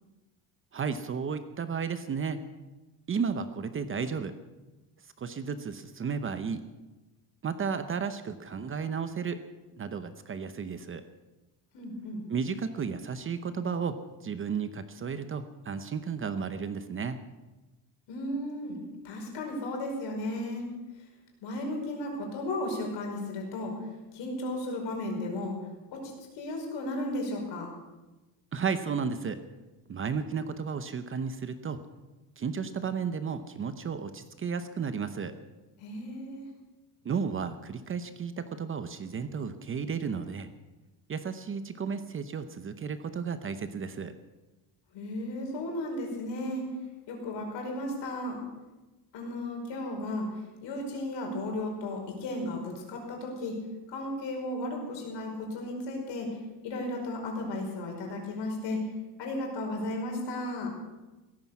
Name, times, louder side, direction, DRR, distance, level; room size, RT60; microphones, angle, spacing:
voice 1, 0.7-2.4 3.1-4.3 5.2-6.6 7.4-9.4 9.7-11.0 12.3-17.2 28.5-29.4 29.9-31.8 32.4-35.4 37.0-40.5 41.1-44.1, right 6 dB, 30° right, 10 dB, 0.8 m, -33 dB
voice 2, 11.7-12.2 18.1-20.6 21.4-23.7 24.1-25.6 25.9-27.7 35.8-36.5 44.9-46.6 47.1-48.4 49.1-53.6 53.9-58.8 59.2-60.7, left 1 dB, 70° left, 1 dB, 5.3 m, -34 dB
17.0 x 14.0 x 6.0 m, 1.1 s
cardioid pair, 165°, 44 cm